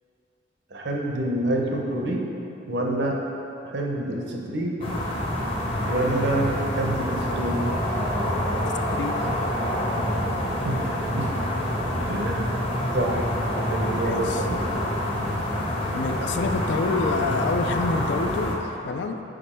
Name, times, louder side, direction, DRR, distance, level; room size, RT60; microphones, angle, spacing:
voice 1, 0.7-2.2 2.7-3.2 3.6-4.9 5.9-7.6 10.6-10.8 11.1-11.3 12.1-12.6 12.9-13.3 13.7-14.7, right 1 dB, 65° right, 0 dB, 0.7 m, -27 dB
sound 1, 4.8-18.6, left 1 dB, 30° left, 0.7 m, -27 dB
voice 2, 14.0-14.4 15.9-19.2, left 4 dB, 65° left, 8 dB, 0.3 m, -27 dB
5.1 x 5.1 x 4.3 m, 2.9 s
head